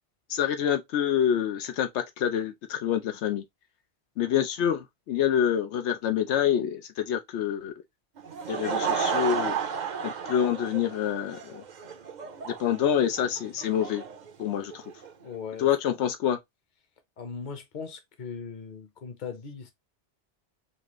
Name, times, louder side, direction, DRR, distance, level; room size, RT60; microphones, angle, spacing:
voice 1, 0.3-3.4 4.2-7.7 8.5-9.6 10.0-11.6 12.5-14.0 14.4-14.8 15.6-16.4, left 9 dB, 85° left, 0.9 m, -27 dB
Laughter / Crowd, 8.2-15.1, right 6 dB, 50° right, 0.7 m, -33 dB
voice 2, 15.2-15.8 17.2-19.7, left 6 dB, 45° left, 0.9 m, -39 dB
4.2 x 2.4 x 3.0 m
omnidirectional pair, 1.1 m